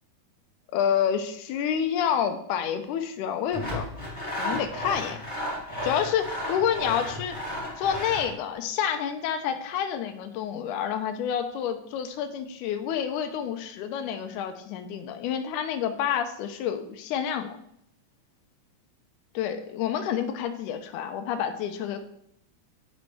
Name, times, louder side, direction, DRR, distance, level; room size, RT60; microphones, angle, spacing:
voice 1, 0.7-3.9 4.4-5.2 5.8-7.4 7.8-17.6 19.4-22.0, left 8 dB, 90° left, 7 dB, 2.1 m, -28 dB
Sawing, 3.5-8.3, left 1 dB, 15° left, 1.3 m, -33 dB
8.9 x 5.1 x 3.2 m, 0.72 s
omnidirectional pair, 3.5 m